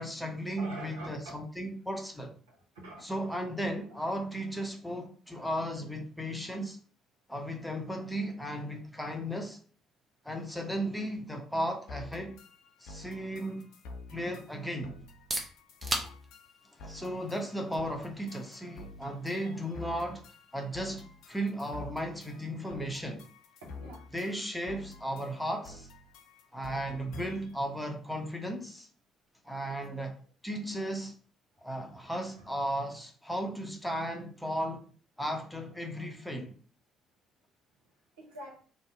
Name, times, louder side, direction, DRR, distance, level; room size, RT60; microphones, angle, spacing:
voice 1, 0.0-2.4 3.0-6.8 7.3-9.6 10.2-12.4 12.8-13.7 14.1-15.0 16.8-20.2 20.5-23.3 24.1-25.9 26.5-28.9 29.4-30.1 30.4-31.1 31.6-34.9 35.2-36.5, equal, 5° left, 0.7 m, -35 dB
voice 2, 0.6-1.3 2.5-3.0 15.9-16.1 19.4-19.6 23.6-24.0 29.9-30.0 31.8-32.5 38.2-38.6, right 1 dB, 75° right, 0.9 m, -47 dB
sound 1, 11.9-27.6, left 3 dB, 65° left, 0.4 m, -49 dB
sound 2, 15.0-30.7, right 1 dB, 30° right, 0.8 m, -46 dB
2.6 x 2.1 x 3.6 m
figure-of-eight pair, 50°, 0 cm